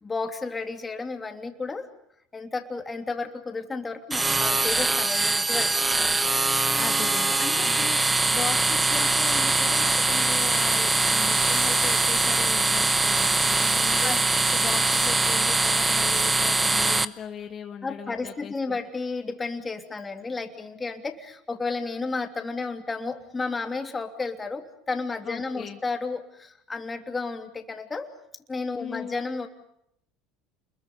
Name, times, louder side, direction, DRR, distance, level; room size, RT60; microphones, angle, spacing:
voice 1, 0.0-1.9 2.3-5.7 7.7-7.8 14.0-14.2 17.8-28.1 28.5-29.5, left 3 dB, 20° left, 5 dB, 3.1 m, -32 dB
sound 1, 4.1-17.0, right 3 dB, 15° right, 1.0 m, -22 dB
voice 2, 6.8-8.0 8.3-14.1 14.5-18.8 25.2-25.8 28.8-29.2, left 8 dB, 40° left, 4 dB, 1.9 m, -38 dB
sound 2, 9.8-16.7, right 11 dB, 85° right, 2.6 m, -42 dB
29.0 x 21.5 x 7.1 m, 0.74 s
supercardioid pair, 110°, 0 cm